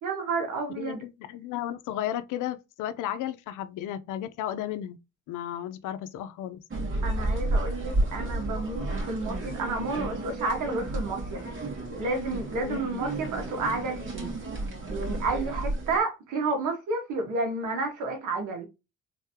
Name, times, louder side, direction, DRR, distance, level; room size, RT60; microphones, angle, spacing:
voice 1, 0.0-1.0 7.0-11.4 12.0-14.3 14.9-18.7, right 3 dB, 85° right, 1.8 m, -31 dB
voice 2, 0.8-5.0 5.3-6.6 12.6-12.8, left 11 dB, 90° left, 0.6 m, -34 dB
sound 1, 6.7-16.0, right 2 dB, 40° right, 2.3 m, -31 dB
3.9 x 3.6 x 2.7 m
cardioid pair, 90°, 30 cm